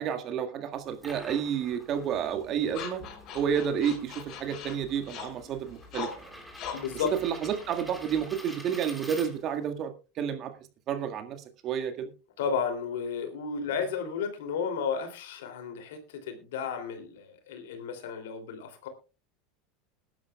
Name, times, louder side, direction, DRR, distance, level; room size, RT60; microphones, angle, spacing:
voice 1, 0.0-3.0 3.3-6.3 7.2-10.5 10.9-12.1, right 8 dB, 45° right, 7 dB, 1.8 m, -30 dB
sound 1, 0.7-9.7, equal, ahead, 3.0 m, -48 dB
sound 2, 1.9-8.4, left 7 dB, 50° left, 6.7 m, -43 dB
voice 2, 6.7-7.1 12.4-18.9, left 6 dB, 70° left, 6 dB, 3.0 m, -33 dB
21.0 x 11.0 x 2.4 m, 0.32 s
hypercardioid pair, 85°, 0 cm